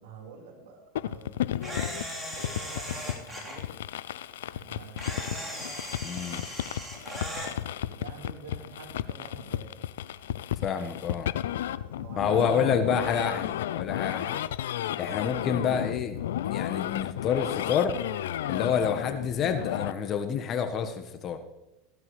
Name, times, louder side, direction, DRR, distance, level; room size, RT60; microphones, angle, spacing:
voice 1, 0.0-3.7 4.5-5.5 7.0-9.7 11.8-13.4 14.1-14.4 18.8-19.1, right 5 dB, 70° right, -1 dB, 4.3 m, -48 dB
sound 1, 1.0-19.9, left 12 dB, 75° left, 0.4 m, -33 dB
Camera, 1.6-3.6 5.0-7.5, equal, 5° right, 3.6 m, -38 dB
voice 2, 6.0-6.4 10.6-11.3 12.2-14.4 15.0-18.0 18.5-21.4, left 7 dB, 40° left, 9 dB, 1.3 m, -28 dB
15.5 x 12.0 x 3.2 m, 0.98 s
hypercardioid pair, 80°, 0 cm